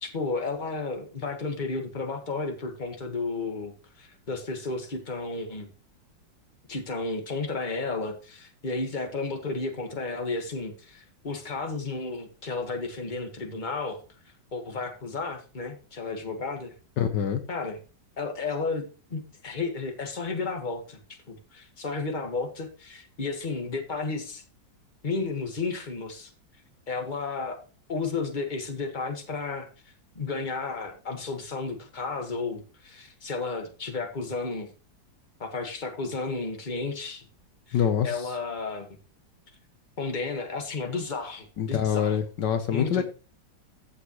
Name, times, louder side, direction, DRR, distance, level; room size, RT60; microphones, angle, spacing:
voice 1, 0.0-5.7 6.7-14.0 14.5-16.7 17.5-17.8 18.2-24.4 25.0-26.3 26.9-27.6 27.9-29.7 30.2-34.7 35.4-37.2 37.7-38.9 40.0-42.2 42.7-43.0, left 3 dB, 25° left, 4 dB, 1.7 m, -33 dB
voice 2, 17.0-17.4 37.7-38.2 41.6-43.0, left 8 dB, 70° left, 8 dB, 1.5 m, -25 dB
14.5 x 6.7 x 3.1 m, 0.36 s
omnidirectional pair, 2.0 m